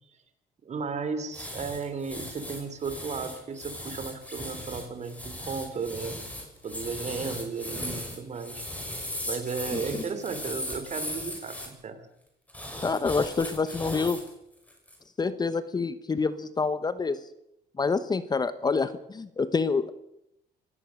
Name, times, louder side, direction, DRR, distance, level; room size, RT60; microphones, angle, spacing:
voice 1, 0.6-6.2 6.6-8.6 9.3-12.0, right 5 dB, 40° right, 10 dB, 3.2 m, -34 dB
sound 1, 1.3-11.7 12.5-14.3 14.7-15.0, left 1 dB, 10° left, 5.5 m, -38 dB
voice 2, 12.8-14.2 15.2-17.2 17.8-19.9, left 4 dB, 25° left, 14 dB, 1.0 m, -27 dB
24.5 x 16.5 x 6.4 m, 0.82 s
cardioid pair, 110°, 17 cm